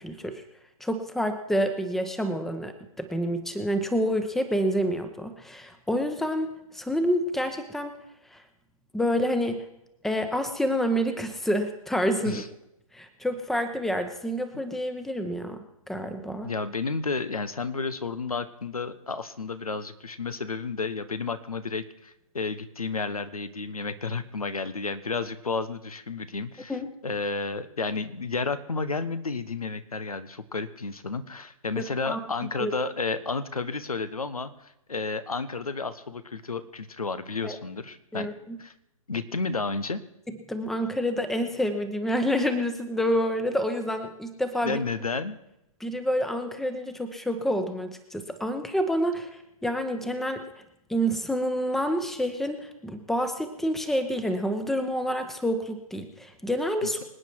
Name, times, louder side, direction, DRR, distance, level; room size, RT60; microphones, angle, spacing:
voice 1, 0.0-0.3 0.8-8.0 8.3-8.4 8.9-9.6 10.0-12.4 12.9-16.5 26.7-26.9 31.8-32.2 32.6-32.7 37.4-37.6 38.1-38.6 40.3-44.8 45.8-49.3 49.6-50.4 50.9-57.0, equal, ahead, 8 dB, 1.0 m, -28 dB
voice 2, 16.4-26.8 27.0-38.3 38.6-38.7 39.1-40.0 44.6-45.4 56.8-57.0, left 4 dB, 85° left, 12 dB, 1.3 m, -31 dB
25.5 x 8.9 x 4.7 m, 0.85 s
figure-of-eight pair, 130°, 18 cm